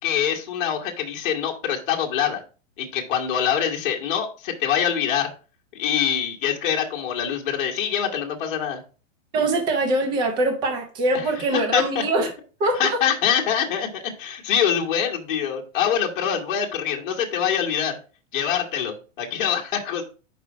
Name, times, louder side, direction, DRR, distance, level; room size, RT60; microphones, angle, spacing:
voice 1, 0.0-2.4 2.8-5.3 5.7-8.8 11.1-11.3 11.5-12.0 12.8-18.0 18.3-20.0, left 8 dB, 40° left, 1.5 m, -24 dB
voice 2, 9.3-12.3 12.6-13.0, right 2 dB, 10° right, 0.6 m, -23 dB
5.3 x 4.8 x 4.8 m
hypercardioid pair, 165°, 38 cm